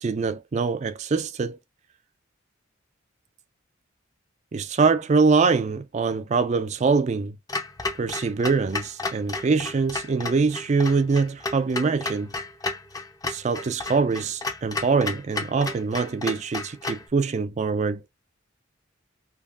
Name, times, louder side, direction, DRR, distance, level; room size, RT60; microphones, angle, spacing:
voice 1, 0.0-1.6 4.5-7.4 8.0-12.3 13.2-18.0, right 4 dB, 35° right, 0.4 m, -24 dB
Clock, 7.5-17.1, left 3 dB, 15° left, 0.5 m, -32 dB
3.5 x 3.1 x 2.4 m
head